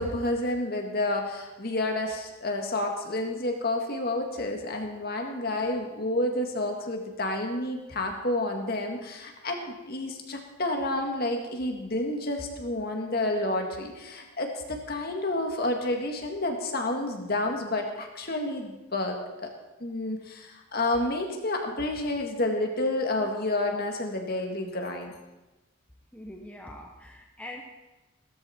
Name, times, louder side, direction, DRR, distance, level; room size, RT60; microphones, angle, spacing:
voice 1, 0.0-19.5 19.8-25.1, left 2 dB, 45° left, 3 dB, 2.0 m, -30 dB
voice 2, 26.1-27.6, left 1 dB, 5° left, 0 dB, 1.1 m, -43 dB
16.5 x 13.5 x 4.5 m, 1.1 s
head